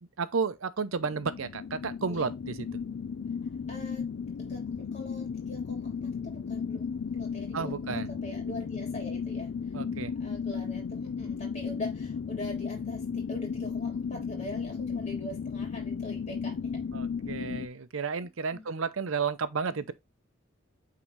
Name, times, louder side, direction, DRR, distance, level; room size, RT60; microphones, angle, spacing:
voice 1, 0.2-2.7 7.5-8.1 9.7-10.1 16.9-19.9, right 5 dB, 85° right, 0.7 m, -32 dB
sound 1, 1.0-17.7, left 6 dB, 70° left, 0.4 m, -35 dB
voice 2, 3.4-4.1 4.4-9.5 10.2-16.8 18.5-18.7 19.7-19.9, left 1 dB, 35° left, 3.0 m, -43 dB
8.7 x 3.8 x 3.2 m
head